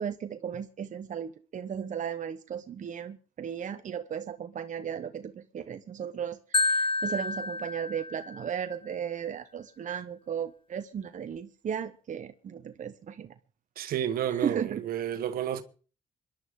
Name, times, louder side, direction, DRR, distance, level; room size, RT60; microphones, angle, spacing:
voice 1, 0.0-13.3 14.3-14.8, right 8 dB, 55° right, 1.0 m, -35 dB
Marimba xylophone, 6.5-8.6, left 3 dB, 35° left, 1.2 m, -29 dB
voice 2, 13.8-15.6, right 10 dB, 75° right, 1.4 m, -31 dB
26.0 x 11.5 x 3.7 m
supercardioid pair, 55°, 15 cm